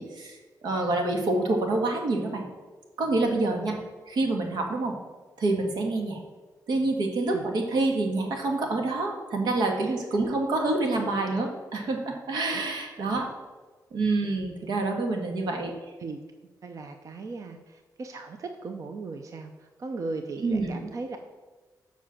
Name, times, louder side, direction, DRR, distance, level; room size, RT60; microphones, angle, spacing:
voice 1, 0.0-2.4 3.0-3.8 4.1-4.9 5.4-6.2 6.7-13.3 13.9-15.7 20.4-20.8, right 2 dB, 90° right, 2 dB, 1.8 m, -27 dB
voice 2, 16.6-21.2, right 3 dB, 50° right, 6 dB, 0.7 m, -38 dB
7.4 x 5.7 x 7.3 m, 1.3 s
wide cardioid pair, 120°, 7 cm